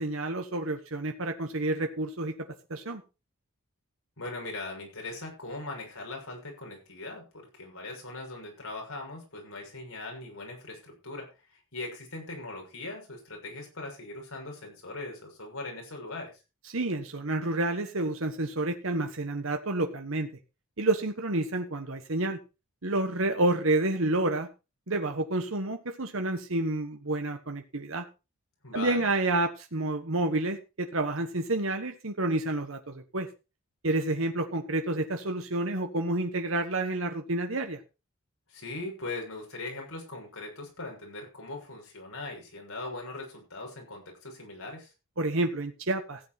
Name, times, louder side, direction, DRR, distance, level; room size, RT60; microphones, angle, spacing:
voice 1, 0.0-3.0 16.7-20.3 20.8-22.4 22.8-24.5 24.9-28.1 28.7-33.3 33.8-37.8 45.2-46.2, right 2 dB, 60° right, 5 dB, 1.3 m, -29 dB
voice 2, 4.2-16.3 28.6-29.1 38.5-44.9, left 2 dB, 70° left, 1 dB, 6.5 m, -40 dB
15.5 x 8.4 x 4.3 m, 0.30 s
head